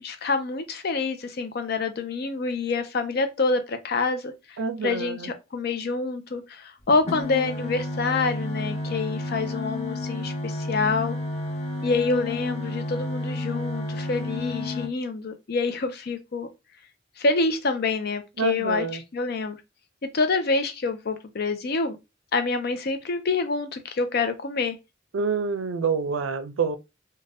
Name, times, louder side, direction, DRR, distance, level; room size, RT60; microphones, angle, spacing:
voice 1, 0.0-4.3 4.8-11.2 11.8-16.5 17.2-18.9 19.1-19.6 20.1-22.0 22.3-24.8, left 3 dB, 55° left, 0.5 m, -27 dB
voice 2, 4.6-5.3 18.4-19.0 25.1-26.8, right 5 dB, 90° right, 0.4 m, -27 dB
sound 1, 6.9-14.9, left 2 dB, 35° left, 0.9 m, -31 dB
2.6 x 2.2 x 3.3 m
head